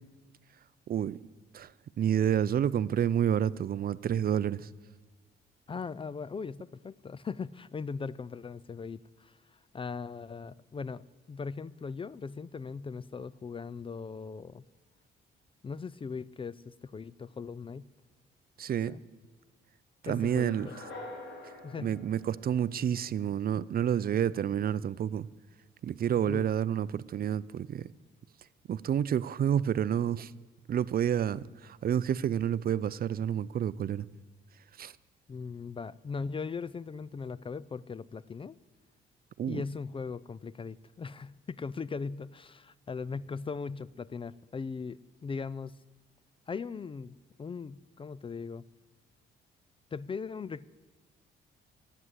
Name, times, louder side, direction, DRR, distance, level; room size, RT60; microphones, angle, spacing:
voice 1, 0.9-1.2 1.5-1.7 2.0-4.7 18.6-18.9 20.0-20.7 21.8-25.3 25.8-27.9 28.7-30.3 30.7-34.1 34.8-34.9 39.4-39.6, right 9 dB, 50° right, 0.5 m, -29 dB
voice 2, 5.7-9.3 9.7-11.0 11.3-14.6 15.6-17.8 18.9-19.0 20.0-20.8 21.6-22.0 26.3-26.5 35.3-38.6 39.5-45.7 46.5-48.6 49.9-50.6, left 5 dB, 25° left, 0.4 m, -39 dB
sound 1, 20.0-23.1, left 2 dB, 65° left, 4.3 m, -47 dB
15.0 x 9.9 x 8.1 m
cardioid pair, 90°, 20 cm